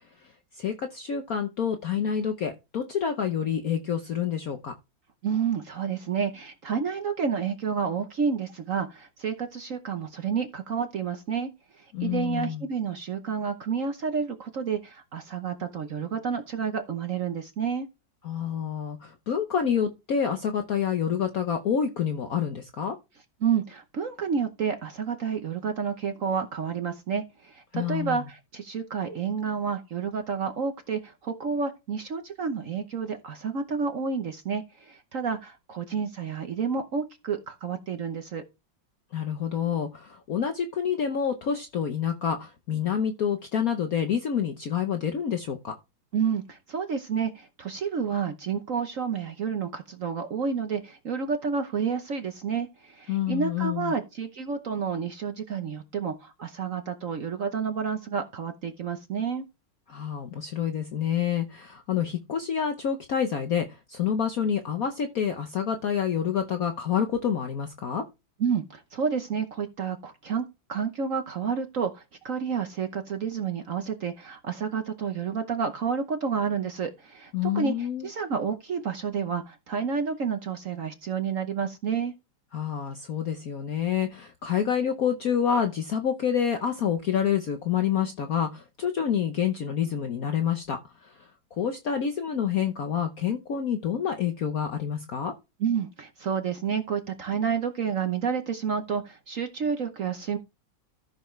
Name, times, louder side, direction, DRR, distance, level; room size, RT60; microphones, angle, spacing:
voice 1, 0.6-4.7 11.9-12.6 18.2-23.0 27.7-28.2 39.1-45.7 53.1-53.9 59.9-68.0 77.3-78.1 82.5-90.8 91.0-91.1 91.5-95.3, left 8 dB, 55° left, 1.2 m, -28 dB
voice 2, 5.2-11.5 11.8-17.9 23.4-38.4 46.1-59.5 68.4-82.1 95.6-100.4, right 6 dB, 50° right, 1.1 m, -30 dB
13.5 x 6.9 x 3.2 m
omnidirectional pair, 2.0 m